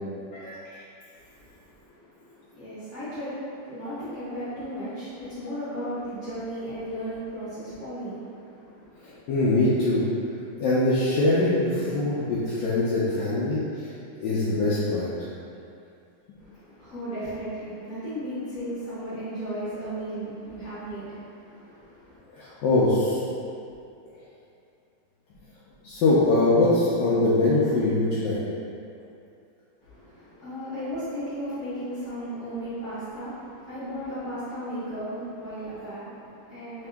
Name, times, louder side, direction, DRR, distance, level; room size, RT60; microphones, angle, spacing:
voice 1, 1.1-9.2 16.4-22.2 29.8-36.9, equal, 60° left, -15 dB, 1.6 m, -35 dB
voice 2, 9.3-10.0 10.6-13.9 14.2-15.1 22.3-23.2 25.8-28.4, left 2 dB, 80° left, -9 dB, 1.3 m, -22 dB
3.5 x 2.8 x 3.4 m, 2.5 s
omnidirectional pair, 1.9 m